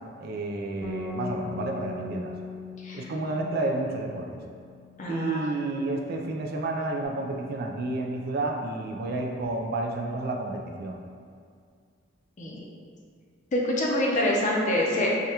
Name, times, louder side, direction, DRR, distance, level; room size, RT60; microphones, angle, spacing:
voice 1, 0.2-2.3 2.9-4.4 5.1-11.0, right 2 dB, 50° right, 1 dB, 0.3 m, -30 dB
Bass guitar, 0.8-7.1, left 4 dB, 80° left, 0.8 m, -41 dB
voice 2, 5.0-5.4 12.4-12.6 13.5-15.1, left 1 dB, 40° left, -3 dB, 0.5 m, -26 dB
4.7 x 2.2 x 2.8 m, 2.2 s
head